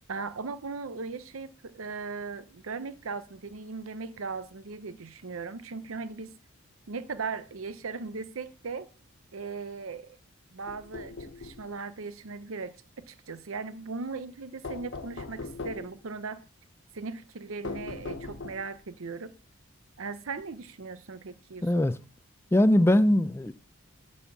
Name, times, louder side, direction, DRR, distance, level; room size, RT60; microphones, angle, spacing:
voice 1, 0.1-6.3 6.9-8.9 9.3-10.2 10.5-16.4 16.9-19.3 20.0-21.8, right 4 dB, 75° right, 0.7 m, -38 dB
sound 1, 10.7-11.7 14.6-16.0 17.6-18.8, left 3 dB, 60° left, 0.8 m, -39 dB
voice 2, 21.6-21.9 22.5-23.5, left 1 dB, 10° left, 0.4 m, -21 dB
10.0 x 4.3 x 7.0 m
head